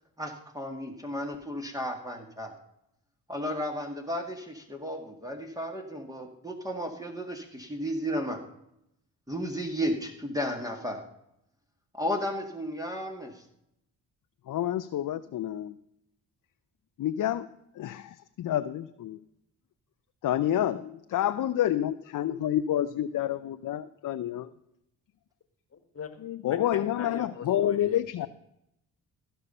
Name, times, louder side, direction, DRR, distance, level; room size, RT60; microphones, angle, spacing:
voice 1, 0.2-2.5 3.3-8.4 9.3-11.0 11.9-13.5, equal, 10° right, 3 dB, 1.9 m, -33 dB
voice 2, 14.5-15.7 17.0-17.5 17.7-19.2 20.2-24.5 26.2-28.3, left 11 dB, 55° left, 11 dB, 0.6 m, -29 dB
voice 3, 25.7-26.2 26.5-28.3, left 6 dB, 35° left, 9 dB, 1.6 m, -42 dB
15.0 x 5.7 x 5.4 m, 0.79 s
supercardioid pair, 55°, 39 cm